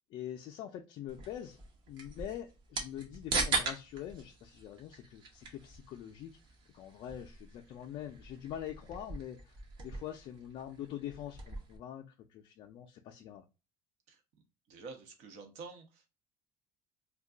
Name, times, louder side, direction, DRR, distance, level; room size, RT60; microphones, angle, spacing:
voice 1, 0.1-1.6 1.9-6.3 6.7-13.4, left 10 dB, 50° left, 0.4 m, -44 dB
sound 1, 1.1-11.8, right 3 dB, 40° right, 0.8 m, -41 dB
voice 2, 14.7-16.1, right 4 dB, 70° right, 0.9 m, -48 dB
2.3 x 2.2 x 3.7 m
cardioid pair, 140°, 12 cm